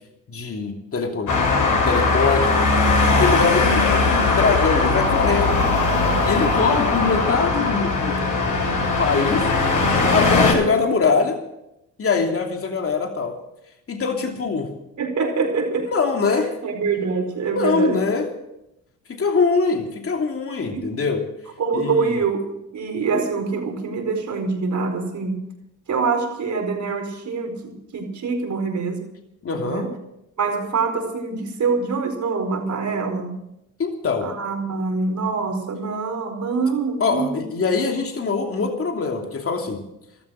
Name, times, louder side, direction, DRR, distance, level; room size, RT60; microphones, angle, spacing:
voice 1, 0.3-2.6 3.2-5.6 6.2-8.2 8.9-9.5 10.1-11.4 12.0-13.3 13.9-14.7 15.9-16.5 17.5-18.3 19.1-21.2 21.7-22.2 29.4-29.9 33.8-34.3 37.0-39.8, left 4 dB, 40° left, 3 dB, 2.9 m, -23 dB
Traffic noise roadway noise, 1.3-10.5, left 3 dB, 55° left, 7.9 m, -19 dB
voice 2, 15.0-15.9 16.6-18.0 20.7-20.9 21.6-22.5 22.7-25.4 25.9-29.0 29.6-29.9 30.4-33.3 34.2-37.4, right 4 dB, 50° right, 5 dB, 4.6 m, -25 dB
15.0 x 13.5 x 6.5 m, 0.85 s
supercardioid pair, 65°, 36 cm